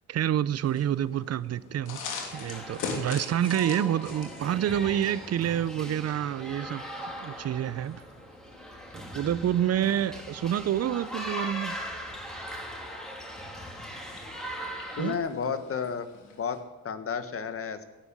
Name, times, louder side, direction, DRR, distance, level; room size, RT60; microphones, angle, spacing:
voice 1, 0.1-2.0 2.3-8.0 8.9-11.8 15.0-15.2, right 10 dB, 55° right, 0.7 m, -28 dB
sound 1, 0.6-16.6, left 5 dB, 85° left, 2.9 m, -44 dB
sound 2, 2.3-15.2, equal, ahead, 3.1 m, -40 dB
voice 2, 15.0-16.6 16.8-17.8, left 6 dB, 50° left, 1.7 m, -32 dB
16.5 x 10.5 x 7.7 m
cardioid pair, 90°, 30 cm